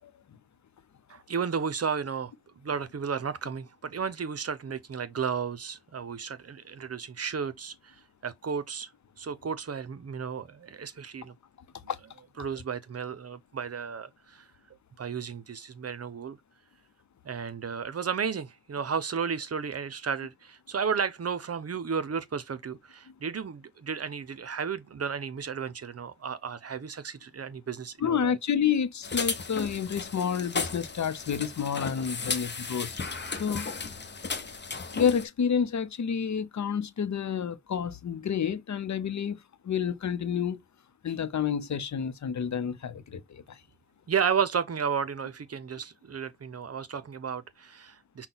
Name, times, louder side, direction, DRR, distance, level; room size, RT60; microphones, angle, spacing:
voice 1, 0.0-0.4 11.9-12.0 28.0-32.9 33.4-33.7 34.9-40.6 41.0-43.6, left 7 dB, 70° left, 0.7 m, -29 dB
voice 2, 1.1-8.9 9.2-11.3 12.4-14.5 15.0-16.4 17.2-28.4 44.1-48.3, right 6 dB, 55° right, 0.7 m, -33 dB
sound 1, 29.0-35.2, left 4 dB, 35° left, 0.8 m, -35 dB
5.8 x 2.2 x 3.9 m
cardioid pair, 65°, 30 cm